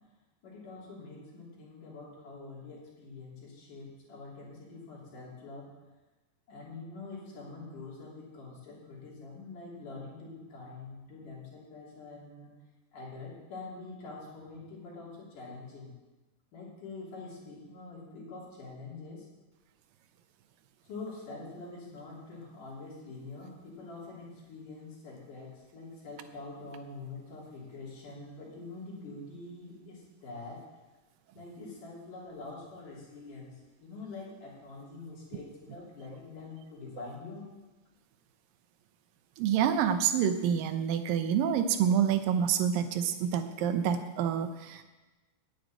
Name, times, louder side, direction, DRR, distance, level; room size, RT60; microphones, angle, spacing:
voice 1, 0.4-5.7 6.5-12.5 12.9-15.9 16.5-19.3 20.8-30.6 31.3-37.5, left 3 dB, 70° left, -5 dB, 4.7 m, -45 dB
voice 2, 39.4-44.8, right 8 dB, 85° right, 9 dB, 2.6 m, -27 dB
9.4 x 8.6 x 9.0 m, 1.2 s
omnidirectional pair, 3.9 m